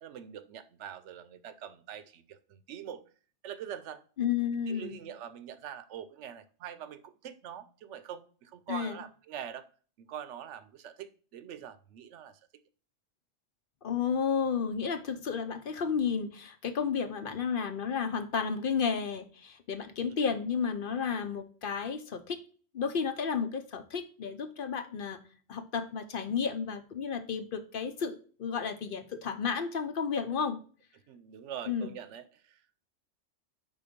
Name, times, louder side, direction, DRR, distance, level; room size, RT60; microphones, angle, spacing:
voice 1, 0.0-3.0 3.4-4.0 4.7-9.7 10.0-12.4 31.1-32.6, right 9 dB, 75° right, 0.9 m, -44 dB
voice 2, 4.2-5.0 8.7-9.0 13.8-22.4 22.7-25.2 25.5-30.6 31.7-31.9, left 6 dB, 55° left, 0.7 m, -32 dB
5.7 x 3.8 x 5.0 m
omnidirectional pair, 1.3 m